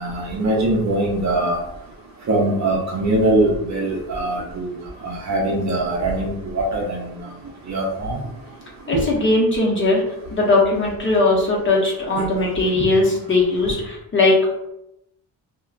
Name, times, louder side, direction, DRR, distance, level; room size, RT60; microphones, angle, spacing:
voice 1, 0.0-1.6 2.3-4.7 5.0-7.1 7.7-8.2 8.9-9.0 12.8-12.9, right 1 dB, 45° right, -1 dB, 0.6 m, -22 dB
voice 2, 8.9-10.0 10.3-14.3, left 2 dB, 30° left, -3 dB, 0.7 m, -19 dB
2.7 x 2.1 x 2.4 m, 0.84 s
cardioid pair, 120°, 40 cm